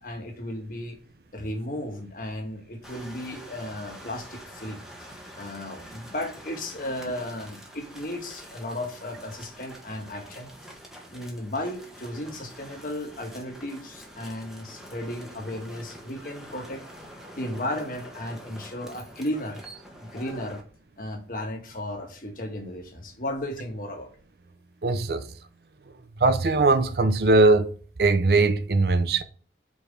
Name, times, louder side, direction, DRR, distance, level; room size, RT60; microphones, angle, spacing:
voice 1, 0.0-1.0 1.3-4.8 5.3-10.5 11.1-16.8 17.3-19.6 20.0-20.6 21.0-24.1, left 1 dB, 50° left, 1.4 m, -34 dB
sound 1, 2.8-20.6, equal, ahead, 1.2 m, -46 dB
voice 2, 24.8-25.2 26.2-27.7 28.0-29.2, right 2 dB, 60° right, 0.6 m, -20 dB
5.5 x 4.8 x 4.9 m
head